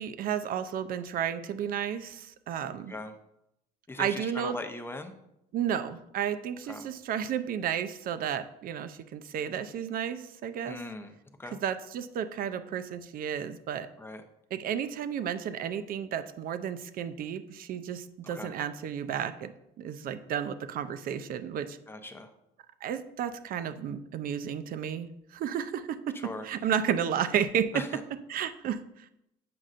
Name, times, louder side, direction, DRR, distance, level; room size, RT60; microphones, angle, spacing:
voice 1, 0.0-2.9 4.0-4.6 5.5-10.8 11.5-13.9 14.5-19.5 19.8-21.8 22.8-26.1 26.4-27.9 28.3-29.1, right 8 dB, 60° right, 12 dB, 0.5 m, -32 dB
voice 2, 3.9-5.1 6.7-6.9 10.6-11.1 11.4-11.6 14.0-14.2 18.3-18.5 21.9-22.3 26.2-26.5 27.7-28.0, left 2 dB, 15° left, 6 dB, 0.6 m, -39 dB
7.6 x 5.3 x 2.5 m, 0.82 s
cardioid pair, 110°, 17 cm